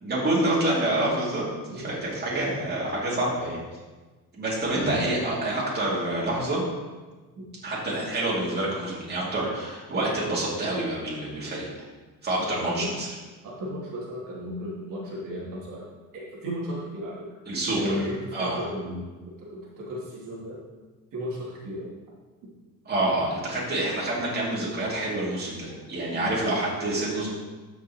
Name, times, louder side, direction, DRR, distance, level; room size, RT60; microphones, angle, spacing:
voice 1, 0.0-1.5 1.7-3.6 4.3-6.6 7.6-11.7 12.2-13.1 17.5-18.7 22.8-27.3, right 1 dB, 30° right, -6 dB, 2.7 m, -27 dB
voice 2, 12.4-12.9 13.4-15.9 16.1-17.3 17.7-19.1 19.4-20.6 21.1-21.9 26.1-26.3, equal, 70° right, -6 dB, 2.9 m, -34 dB
13.5 x 6.1 x 3.0 m, 1.3 s
cardioid pair, 140°, 34 cm